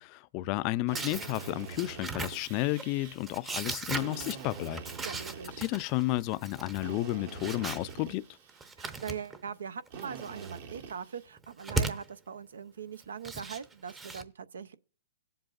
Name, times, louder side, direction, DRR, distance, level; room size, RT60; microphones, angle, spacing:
voice 1, 0.0-4.8 5.6-8.2, left 17 dB, 35° left, 0.3 m, -32 dB
sound 1, 0.9-7.9 8.5-9.5 9.9-10.6 11.4-12.0 13.0-14.2, right 3 dB, 15° right, 0.7 m, -38 dB
Drill, 0.9-3.1 3.9-6.1 6.8-8.7 9.9-11.3, right 6 dB, 60° right, 1.4 m, -45 dB
voice 2, 5.0-5.6 8.8-14.8, right 7 dB, 85° right, 0.6 m, -41 dB
17.5 x 7.7 x 2.4 m
hypercardioid pair, 145°, 0 cm